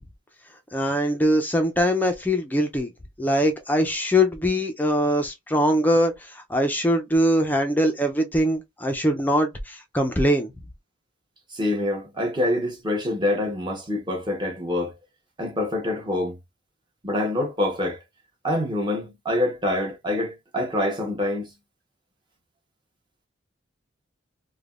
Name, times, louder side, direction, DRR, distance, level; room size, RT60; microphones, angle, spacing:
voice 1, 0.7-2.9 3.2-10.5, equal, 10° left, 0.4 m, -22 dB
voice 2, 11.5-14.9 15.4-16.4 17.0-18.0 18.4-21.5, left 1 dB, 25° right, 0.9 m, -26 dB
3.3 x 2.1 x 2.3 m
head